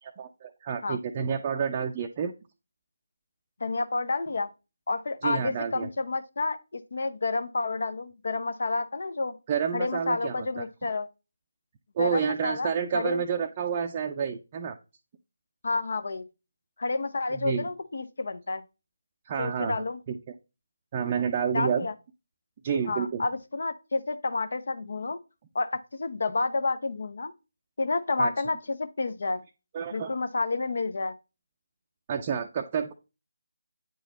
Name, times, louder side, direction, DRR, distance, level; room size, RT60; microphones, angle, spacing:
voice 1, 0.0-2.3 5.2-5.9 9.5-10.7 12.0-14.8 17.3-17.7 19.2-20.2 20.9-21.9 22.6-23.3 28.2-28.3 29.7-30.1 32.1-32.9, right 7 dB, 25° right, 0.5 m, -29 dB
voice 2, 3.6-4.5 4.9-9.4 9.7-11.1 12.0-13.2 15.6-16.2 16.8-18.6 19.4-20.0 21.5-21.9 22.9-25.2 25.5-27.3 27.8-29.4 29.9-31.1, left 3 dB, 55° left, 0.7 m, -30 dB
8.8 x 4.0 x 3.9 m
figure-of-eight pair, 155°, 0 cm